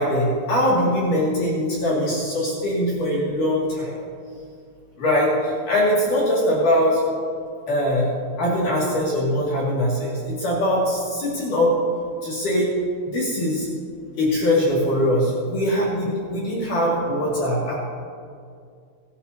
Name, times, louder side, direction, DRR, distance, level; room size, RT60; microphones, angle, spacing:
voice 1, 0.0-4.0 5.0-7.0 7.7-8.1 8.4-11.7 12.2-12.7 13.1-13.7 14.2-17.7, equal, 55° left, -6 dB, 3.5 m, -22 dB
23.0 x 11.5 x 2.8 m, 2.2 s
omnidirectional pair, 4.7 m